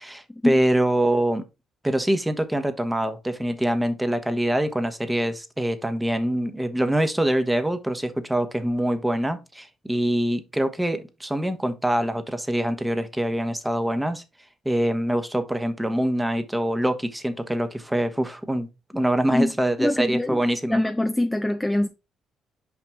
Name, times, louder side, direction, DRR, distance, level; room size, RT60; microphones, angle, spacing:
voice 1, 0.0-1.4 1.8-14.2 14.6-18.7 18.9-20.8, right 1 dB, 10° right, 1.1 m, -24 dB
voice 2, 19.8-20.4 20.7-21.9, left 1 dB, 10° left, 0.6 m, -23 dB
5.9 x 5.1 x 3.5 m
cardioid pair, 90°, 0 cm